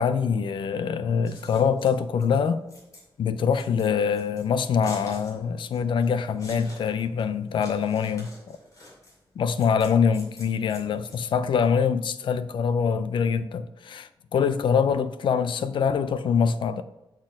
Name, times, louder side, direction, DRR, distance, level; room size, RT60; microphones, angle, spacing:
voice 1, 0.0-2.6 3.2-8.6 9.4-16.8, left 6 dB, 65° left, 0.4 m, -24 dB
Scissors, 1.1-11.7, left 1 dB, 40° left, 2.5 m, -48 dB
6.1 x 4.3 x 4.9 m
wide cardioid pair, 175°, 9 cm